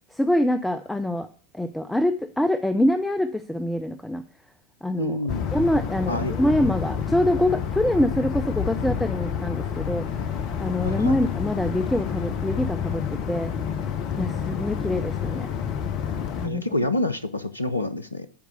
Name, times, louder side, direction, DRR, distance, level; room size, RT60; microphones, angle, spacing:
voice 1, 0.1-1.3 1.6-4.2 4.8-5.2 5.5-10.1 10.6-13.5 14.2-15.5 16.4-16.6, left 1 dB, 5° left, 10 dB, 0.5 m, -25 dB
voice 2, 5.0-5.4 6.1-6.3 10.8-11.2 16.4-18.3, left 1 dB, 80° left, 13 dB, 0.6 m, -27 dB
sound 1, 5.3-16.5, left 7 dB, 40° left, 0.8 m, -29 dB
10.5 x 4.7 x 8.0 m, 0.42 s
figure-of-eight pair, 90°, 0 cm